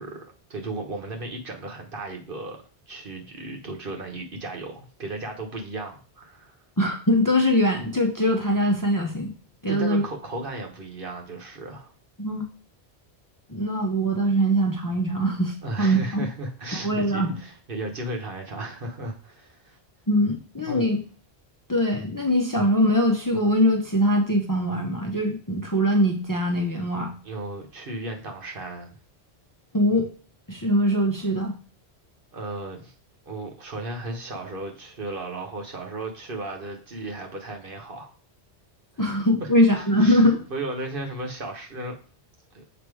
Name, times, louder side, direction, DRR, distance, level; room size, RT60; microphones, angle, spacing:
voice 1, 0.0-2.6 2.9-6.6 9.7-11.9 15.6-19.8 20.6-20.9 27.2-29.0 32.3-32.9 33.3-38.1 39.0-39.1 39.4-42.0 42.5-42.6, right 2 dB, 55° right, 2 dB, 1.2 m, -35 dB
voice 2, 6.8-9.3 9.6-10.0 12.2-12.4 13.5-16.3 16.7-17.3 20.1-21.0 21.7-27.1 29.7-30.1 30.5-31.5 39.0-40.4, equal, 20° left, 2 dB, 0.7 m, -22 dB
7.0 x 2.9 x 4.7 m, 0.39 s
omnidirectional pair, 1.1 m